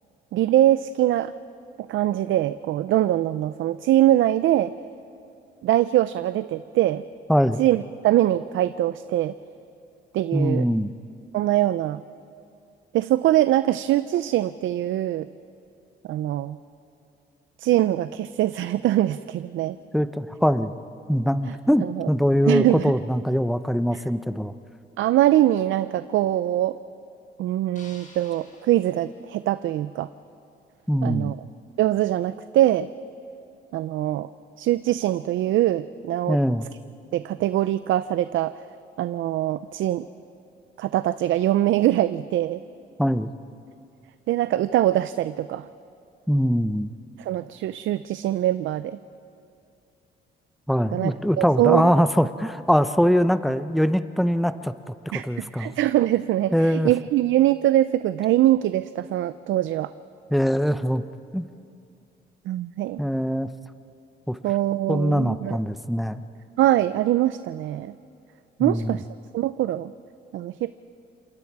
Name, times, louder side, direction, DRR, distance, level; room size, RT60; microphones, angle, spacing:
voice 1, 0.3-1.3 1.9-4.7 5.6-7.0 7.6-9.3 10.1-10.7 11.3-12.0 12.9-15.3 16.0-16.6 17.6-19.8 21.4-21.5 21.8-22.1 22.5-22.9 23.9-24.0 25.0-26.8 27.4-30.1 31.0-31.4 31.8-32.9 33.7-34.3 34.6-36.4 37.1-38.5 39.0-40.1 40.8-42.6 44.3-45.7 47.2-49.0 50.9-51.9 55.1-59.9 62.5-63.0 64.4-65.6 66.6-67.9 68.6-69.0 69.3-69.9 70.3-70.7, right 13 dB, 75° right, 13 dB, 0.5 m, -23 dB
voice 2, 7.3-7.6 10.3-10.9 19.9-20.7 21.1-24.5 30.9-31.4 36.3-36.7 43.0-43.3 46.3-46.9 50.7-55.7 56.5-56.9 60.3-61.0 61.3-61.4 63.0-63.5 64.3-64.4 64.9-66.2 68.6-69.0, equal, ahead, 11 dB, 0.8 m, -22 dB
sound 1, 27.8-30.0, left 3 dB, 40° left, 5.0 m, -52 dB
28.5 x 27.0 x 4.8 m, 2.6 s
cardioid pair, 90°, 20 cm